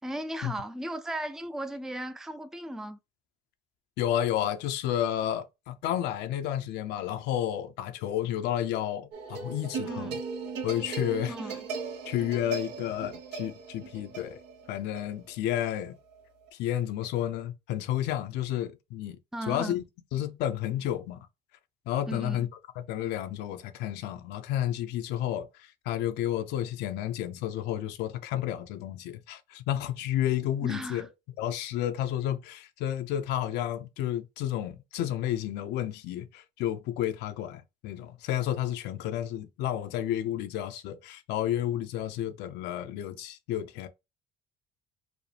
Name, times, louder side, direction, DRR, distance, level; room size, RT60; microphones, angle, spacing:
voice 1, 0.0-3.0 9.8-10.2 11.3-11.6 19.3-19.8 22.1-22.5 30.6-31.1, right 1 dB, 5° right, 0.4 m, -36 dB
voice 2, 4.0-10.2 10.6-11.4 12.1-14.4 14.7-16.0 16.5-19.2 19.5-19.8 20.1-21.3 21.9-22.5 22.8-31.1 31.4-43.9, left 11 dB, 90° left, 0.7 m, -31 dB
sound 1, 9.1-16.5, right 5 dB, 85° right, 1.0 m, -38 dB
5.0 x 2.1 x 3.3 m
cardioid pair, 110°, 17 cm